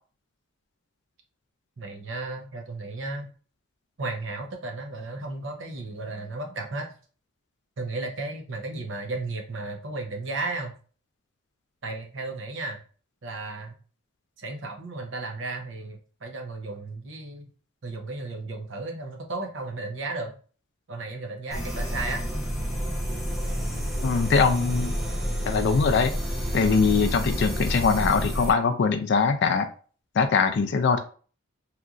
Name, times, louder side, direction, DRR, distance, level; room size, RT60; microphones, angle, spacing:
voice 1, 1.8-3.3 4.0-6.9 7.8-10.8 11.8-12.8 13.2-13.8 14.4-17.5 17.8-20.3 20.9-22.2, right 2 dB, 60° right, 3 dB, 0.6 m, -34 dB
sound 1, 21.5-28.5, equal, ahead, 0.5 m, -29 dB
voice 2, 24.0-25.0 25.5-26.1 26.5-29.7 30.2-31.0, left 5 dB, 55° left, 9 dB, 0.3 m, -22 dB
2.9 x 2.5 x 2.3 m, 0.40 s
head